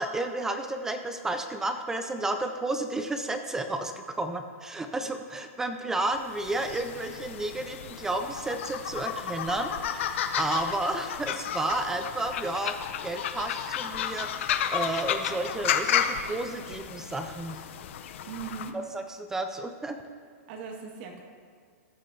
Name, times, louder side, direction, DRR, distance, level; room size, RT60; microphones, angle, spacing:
voice 1, 0.0-12.7 13.0-17.6 18.7-20.0, right 2 dB, 5° right, 7 dB, 0.3 m, -32 dB
sound 1, 6.3-18.7, left 9 dB, 50° left, 0.7 m, -32 dB
voice 2, 18.3-18.8 20.5-21.2, right 6 dB, 40° right, 1 dB, 1.8 m, -39 dB
14.5 x 10.5 x 2.7 m, 2.1 s
hypercardioid pair, 165°, 8 cm